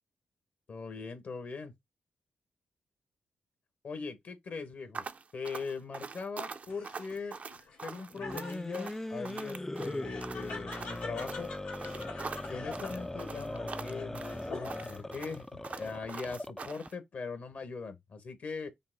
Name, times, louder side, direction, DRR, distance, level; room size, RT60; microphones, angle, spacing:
voice 1, 0.7-1.7 3.8-5.0 5.3-7.4 7.8-11.5 12.5-15.5 15.8-18.7, left 4 dB, 60° left, 1.2 m, -40 dB
sound 1, 4.9-16.9, right 5 dB, 50° right, 0.5 m, -44 dB
Laughter, 6.7-15.1 15.5-16.2, left 3 dB, 85° left, 1.6 m, -46 dB
sound 2, 8.1-16.9, left 1 dB, 10° left, 0.3 m, -40 dB
5.6 x 2.1 x 3.8 m
supercardioid pair, 45°, 3 cm